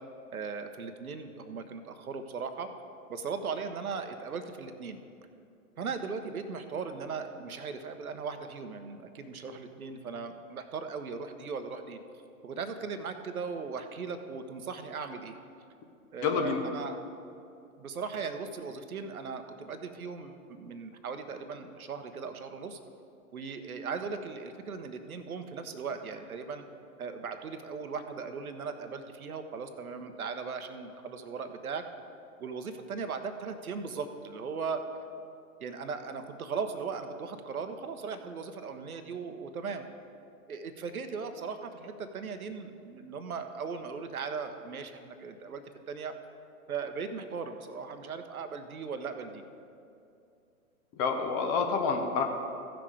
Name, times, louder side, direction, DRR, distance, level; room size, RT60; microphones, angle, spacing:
voice 1, 0.3-2.7 3.1-5.0 5.8-12.0 12.4-15.4 16.1-17.0 17.8-22.8 23.3-26.6 27.0-31.8 32.4-34.8 35.6-39.9 40.5-46.1 46.7-49.4, right 5 dB, 70° right, 8 dB, 1.0 m, -38 dB
voice 2, 16.2-16.6 51.0-52.2, left 5 dB, 20° left, 4 dB, 0.7 m, -28 dB
15.0 x 6.1 x 4.9 m, 2.6 s
figure-of-eight pair, 120°, 44 cm